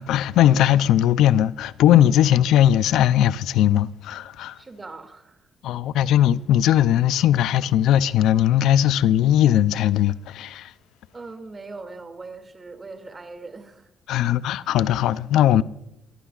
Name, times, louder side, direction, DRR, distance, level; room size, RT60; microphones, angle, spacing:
voice 1, 0.0-4.6 5.6-10.7 14.1-15.6, left 11 dB, 85° left, 0.5 m, -19 dB
voice 2, 4.6-5.5 11.1-13.9, right 3 dB, 30° right, 2.4 m, -40 dB
24.0 x 14.0 x 2.4 m
cardioid pair, 90°, 0 cm